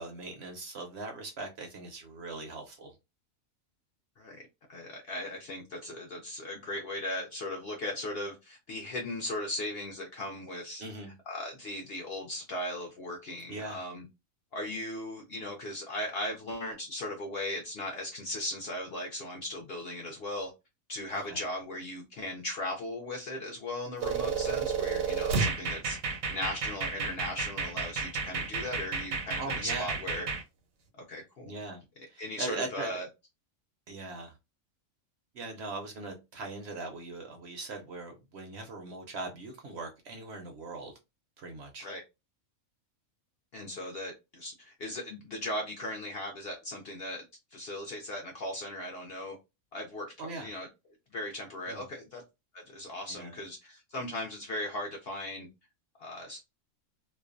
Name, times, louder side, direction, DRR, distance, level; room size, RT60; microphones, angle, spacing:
voice 1, 0.0-2.9 10.8-11.1 13.5-13.8 21.1-21.4 29.4-30.0 31.4-31.8 32.1-32.9 33.9-34.3 35.3-40.9 41.4-41.9 50.2-50.5 51.7-51.8 53.1-53.4, right 3 dB, 60° right, 0.7 m, -40 dB
voice 2, 4.2-10.8 11.3-14.1 14.5-20.5 20.9-30.3 31.1-31.5 32.2-33.1 41.8-42.0 43.5-47.2 47.5-49.4 49.7-50.7 51.1-52.2 52.5-55.5 56.0-56.4, left 1 dB, 65° left, 0.6 m, -38 dB
sound 1, 24.0-30.4, right 5 dB, 80° right, 1.1 m, -32 dB
2.5 x 2.1 x 2.4 m
omnidirectional pair, 1.5 m